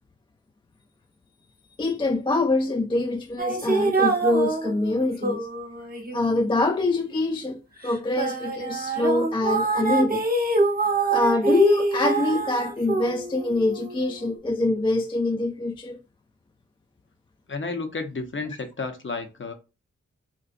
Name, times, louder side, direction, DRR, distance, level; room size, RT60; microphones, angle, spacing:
voice 1, 1.8-5.5 6.1-10.2 11.1-16.0, left 2 dB, 15° left, 0.3 m, -24 dB
sound 1, 3.4-7.4 7.9-14.4, right 3 dB, 30° right, 0.9 m, -26 dB
voice 2, 17.5-19.5, left 3 dB, 40° left, 0.8 m, -32 dB
3.9 x 2.2 x 2.5 m
cardioid pair, 45°, 29 cm